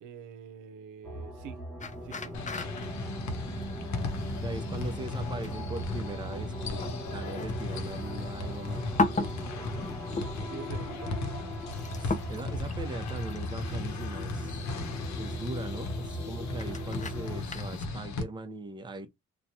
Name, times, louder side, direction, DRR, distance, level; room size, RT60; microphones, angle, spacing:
voice 1, 0.0-1.6 2.0-2.4 9.1-11.2, right 8 dB, 85° right, 0.6 m, -46 dB
sound 1, 1.0-17.4, right 1 dB, ahead, 1.2 m, -40 dB
sound 2, 1.8-17.9, left 3 dB, 25° left, 0.5 m, -38 dB
sound 3, 2.3-18.2, left 3 dB, 70° left, 0.8 m, -37 dB
voice 2, 4.4-8.9 12.0-14.6 15.2-19.1, right 2 dB, 15° right, 0.6 m, -40 dB
3.0 x 2.2 x 2.7 m
cardioid pair, 90°, 30 cm